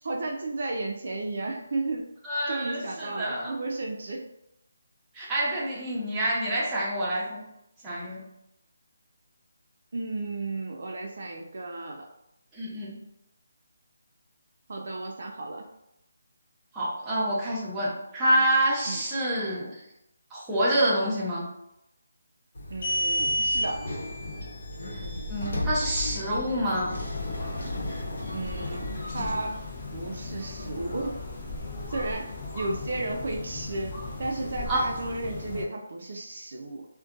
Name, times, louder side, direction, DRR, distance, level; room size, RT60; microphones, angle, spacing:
voice 1, 0.0-2.1 2.5-4.2 9.9-12.1 14.7-15.7 18.8-19.0 22.7-23.9 28.3-28.9 29.1-29.6 29.9-31.2 31.9-36.9, right 2 dB, 60° right, 1 dB, 0.4 m, -33 dB
voice 2, 2.2-3.5 5.1-7.4 7.8-8.2 12.5-13.0 16.7-19.8 20.3-21.4 25.3-27.0 34.7-34.8, right 1 dB, 10° right, -8 dB, 0.7 m, -27 dB
sound 1, 22.5-29.4, left 1 dB, 70° left, 0.9 m, -32 dB
sound 2, 27.1-35.6, left 3 dB, 30° left, 0.5 m, -38 dB
2.5 x 2.1 x 2.4 m, 0.84 s
figure-of-eight pair, 165°, 0 cm